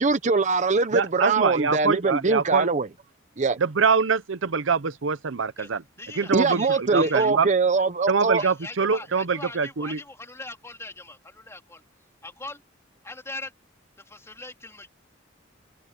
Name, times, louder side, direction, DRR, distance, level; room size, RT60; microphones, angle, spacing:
voice 1, 0.0-2.9 3.4-3.6 6.3-8.4, right 4 dB, 40° right, 0.8 m, -22 dB
voice 2, 0.9-2.7 3.6-5.8 6.2-7.5 8.1-10.0, right 5 dB, 80° right, 0.8 m, -24 dB
voice 3, 6.0-7.3 8.3-11.8 12.2-12.6 13.0-13.5 14.1-14.9, left 2 dB, 15° left, 3.1 m, -40 dB
head